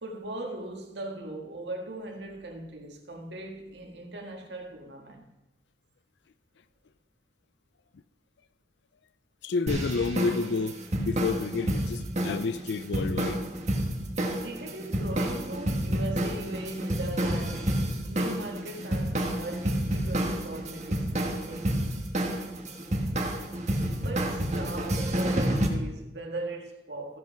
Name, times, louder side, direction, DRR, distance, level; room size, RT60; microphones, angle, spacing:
voice 1, 0.0-5.2 14.4-17.7 18.1-21.8 24.0-27.2, right 2 dB, 75° right, 1.8 m, -39 dB
voice 2, 9.4-13.4, left 4 dB, 75° left, 0.4 m, -30 dB
sound 1, 9.7-25.7, right 1 dB, 40° right, 1.4 m, -29 dB
15.0 x 5.6 x 5.8 m
head